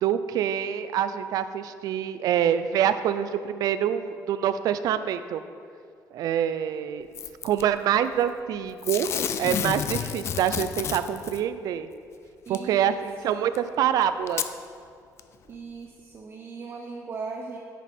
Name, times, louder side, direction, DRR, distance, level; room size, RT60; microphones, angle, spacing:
voice 1, 0.0-5.4 6.1-7.1 7.4-9.1 9.4-11.9 12.5-14.4, right 9 dB, 70° right, 12 dB, 0.5 m, -26 dB
Packing tape duct tape / Tearing, 7.1-7.6 8.8-11.4 12.5-12.6 13.5-13.6 14.3-14.5 15.2-15.3, left 8 dB, 45° left, 0.4 m, -30 dB
voice 2, 12.5-13.0 15.4-17.6, right 4 dB, 35° right, 1 dB, 0.6 m, -38 dB
9.7 x 8.3 x 4.3 m, 2.3 s
cardioid pair, 165°, 7 cm